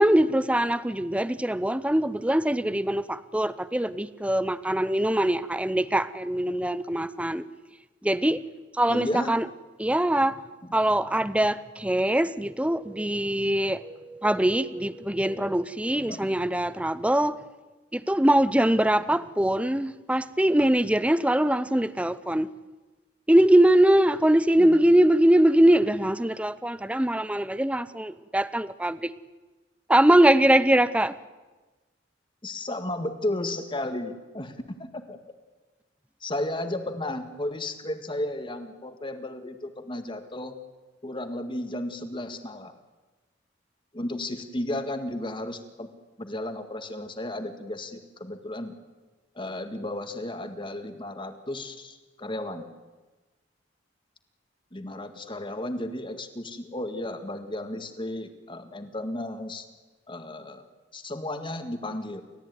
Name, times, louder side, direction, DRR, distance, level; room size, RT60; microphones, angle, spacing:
voice 1, 0.0-7.4 8.0-8.4 8.8-9.5 9.8-10.4 10.7-17.4 17.9-22.5 23.3-29.1 29.9-31.1, right 1 dB, 5° right, 16 dB, 0.7 m, -22 dB
voice 2, 8.9-9.3 10.6-10.7 16.1-16.3 24.6-24.8 32.4-35.2 36.2-40.6 41.0-42.7 43.9-45.9 46.2-48.7 49.4-52.7 54.7-59.7 60.1-62.2, left 1 dB, 25° left, 8 dB, 1.9 m, -34 dB
30.0 x 14.0 x 9.5 m, 1.2 s
head